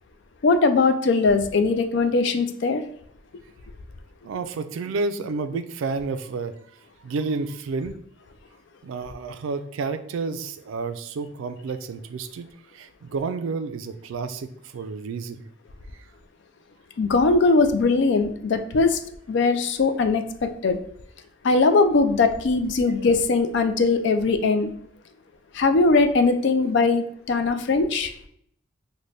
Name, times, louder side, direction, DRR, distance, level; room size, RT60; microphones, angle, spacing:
voice 1, 0.4-2.8 17.0-19.0 19.3-20.8 21.4-24.7 25.5-28.1, left 3 dB, 60° left, 9 dB, 0.4 m, -20 dB
voice 2, 4.2-6.6 7.0-8.0 8.8-15.5, right 4 dB, 75° right, 10 dB, 0.3 m, -30 dB
3.9 x 2.1 x 3.2 m, 0.68 s
head